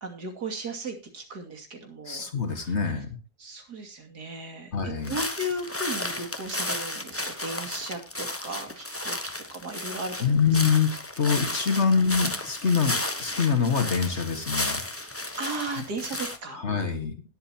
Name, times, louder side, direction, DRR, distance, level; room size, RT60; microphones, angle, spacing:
voice 1, 0.0-2.3 2.6-2.8 3.4-10.4 15.4-16.6, right 2 dB, 80° right, 3 dB, 3.2 m, -36 dB
voice 2, 2.0-3.2 4.7-5.2 10.2-14.8 16.5-17.2, left 6 dB, 45° left, 7 dB, 2.0 m, -25 dB
sound 1, 5.0-16.4, left 1 dB, 10° left, 0.9 m, -33 dB
20.0 x 8.0 x 2.9 m, 0.31 s
omnidirectional pair, 1.7 m